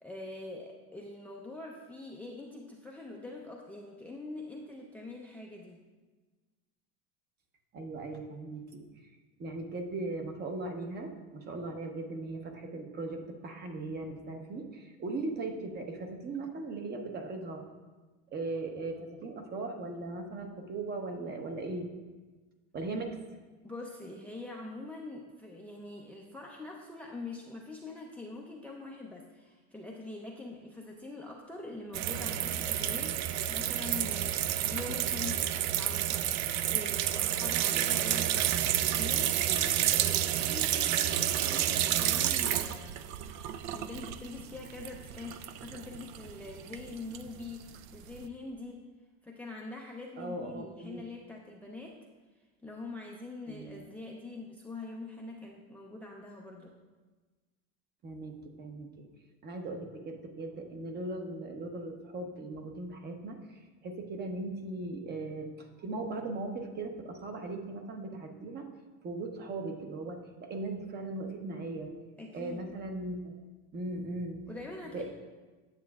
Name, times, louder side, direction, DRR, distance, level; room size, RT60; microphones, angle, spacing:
voice 1, 0.0-5.8 23.6-43.0 43.7-48.8 49.2-52.0 52.6-56.8 72.2-72.7 74.5-75.0, left 2 dB, 5° left, -1 dB, 0.5 m, -44 dB
voice 2, 7.7-8.9 9.4-17.6 18.3-21.9 22.7-23.2 37.7-38.2 50.2-51.0 53.5-53.8 58.0-59.1 59.4-68.7 69.0-71.9 72.3-73.3 73.7-74.4 74.9-75.0, right 2 dB, 30° right, 4 dB, 0.9 m, -38 dB
sound 1, 31.9-48.3, right 11 dB, 55° right, 0.4 m, -30 dB
9.2 x 7.6 x 2.4 m, 1.3 s
supercardioid pair, 130°, 33 cm